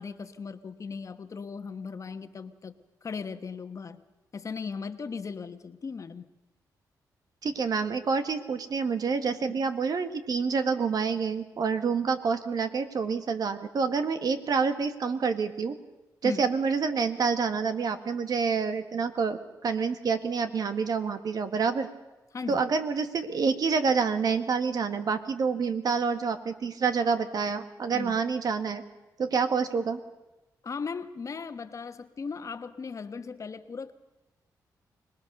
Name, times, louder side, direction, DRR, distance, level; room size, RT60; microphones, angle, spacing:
voice 1, 0.0-2.7 3.0-4.0 4.3-6.3 9.5-9.6 16.2-16.5 22.3-22.6 27.9-28.2 30.6-33.9, left 5 dB, 45° left, 9 dB, 1.3 m, -37 dB
voice 2, 7.4-15.8 16.2-21.9 22.5-28.8 29.2-30.0, right 5 dB, 60° right, 9 dB, 1.8 m, -27 dB
25.0 x 19.5 x 6.8 m, 1.0 s
cardioid pair, 75°, 7 cm